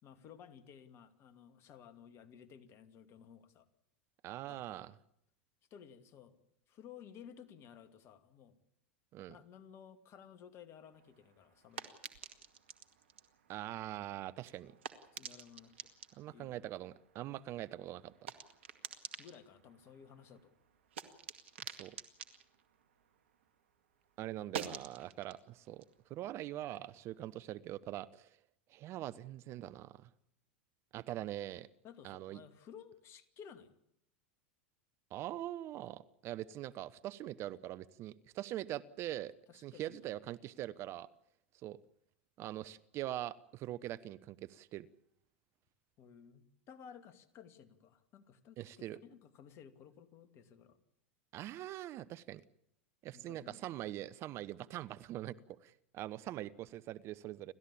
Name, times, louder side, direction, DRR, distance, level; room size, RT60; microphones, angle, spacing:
voice 1, 0.0-3.7 4.5-5.0 5.7-6.4 6.7-8.6 9.3-11.9 15.1-15.9 16.3-16.6 19.2-20.5 31.8-33.7 39.5-40.0 46.0-50.8 53.1-53.7, left 8 dB, 45° left, 11 dB, 2.4 m, -56 dB
voice 2, 4.2-4.9 9.1-9.4 13.5-14.7 16.1-18.3 21.6-21.9 24.2-25.8 26.1-28.4 28.7-30.1 30.9-31.7 32.0-32.4 35.1-39.3 39.6-41.1 41.6-41.8 42.4-44.9 48.6-49.0 51.3-52.4 53.0-57.5, right 14 dB, 45° right, 18 dB, 0.9 m, -43 dB
sound 1, 10.9-23.7 24.0-27.2, right 8 dB, 75° right, 2.1 m, -50 dB
30.0 x 13.5 x 8.6 m, 0.75 s
hypercardioid pair, 90°, 6 cm